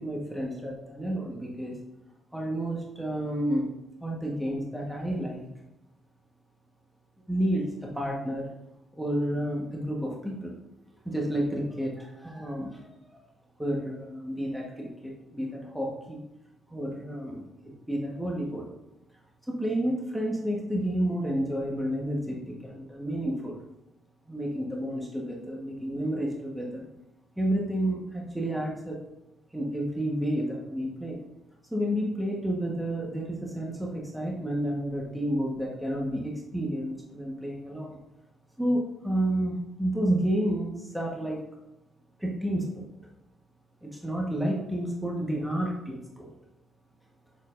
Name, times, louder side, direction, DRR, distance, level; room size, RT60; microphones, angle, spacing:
voice 1, 0.0-1.7 2.3-3.7 4.0-5.5 7.3-8.5 8.9-10.5 11.0-12.9 13.6-16.2 16.7-18.7 19.5-23.6 24.3-26.9 27.4-29.0 29.5-31.2 31.7-38.0 38.6-41.4 42.2-42.8 43.8-46.3, right 1 dB, 5° right, -2 dB, 1.2 m, -30 dB
6.4 x 6.3 x 2.5 m, 0.88 s
cardioid pair, 90°, 0 cm